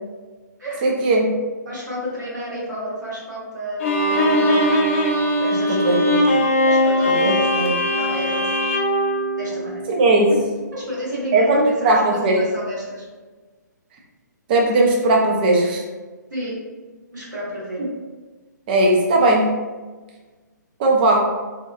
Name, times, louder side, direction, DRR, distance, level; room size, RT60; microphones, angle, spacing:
voice 1, 0.8-1.3 5.8-6.3 7.1-7.7 9.9-10.3 11.3-12.4 14.5-15.8 17.8-17.9 18.7-19.5 20.8-21.2, right 2 dB, 30° right, 0 dB, 0.5 m, -18 dB
voice 2, 1.7-4.8 5.4-6.0 6.7-8.7 9.3-9.8 10.3-10.4 10.7-13.0 16.3-16.5 17.1-17.8, equal, 70° right, -6 dB, 1.2 m, -31 dB
Bowed string instrument, 3.8-10.1, left 1 dB, 40° left, 0.5 m, -20 dB
2.8 x 2.2 x 2.4 m, 1.3 s
figure-of-eight pair, 130°, 10 cm